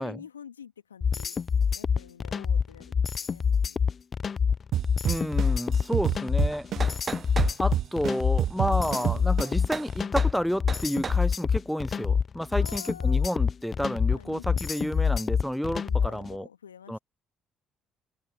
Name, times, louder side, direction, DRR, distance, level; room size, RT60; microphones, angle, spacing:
voice 1, 0.0-1.4 1.7-3.8 8.6-9.2 12.6-13.3 14.1-15.4 15.8-17.0, left 8 dB, 80° left, 3.2 m, -48 dB
sound 1, 1.0-16.3, left 6 dB, 40° left, 1.2 m, -26 dB
sound 2, 4.7-7.1 7.4-9.7, right 11 dB, 55° right, 1.1 m, -27 dB
voice 2, 5.0-6.9 7.6-16.5 16.9-17.0, equal, ahead, 0.6 m, -30 dB
sound 3, 6.5-7.6 9.7-9.9 10.2-10.4 10.7-11.2, right 5 dB, 35° right, 1.2 m, -34 dB
open air
figure-of-eight pair, 45°, 0 cm